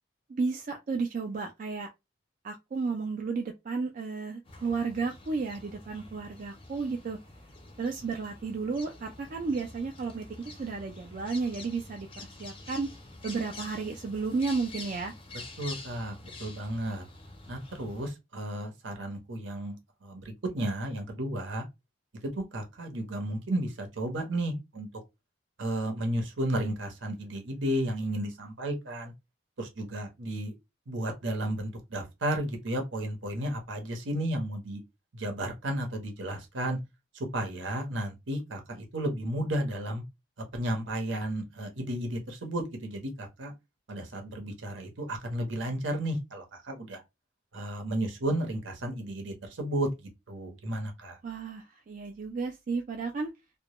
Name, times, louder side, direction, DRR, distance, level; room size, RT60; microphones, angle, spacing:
voice 1, 0.3-1.9 2.4-7.2 7.8-12.9 13.2-15.1 51.2-53.3, right 4 dB, 40° right, 0.3 m, -33 dB
sound 1, 4.5-18.1, left 3 dB, 25° left, 0.5 m, -47 dB
voice 2, 15.6-17.0 17.5-19.8 20.0-21.7 22.2-24.9 25.6-29.1 29.6-30.5 30.9-34.8 35.1-36.8 37.1-40.0 40.5-43.5 43.9-47.0 47.5-51.2, right 1 dB, 70° right, 0.8 m, -33 dB
2.2 x 2.1 x 2.9 m
head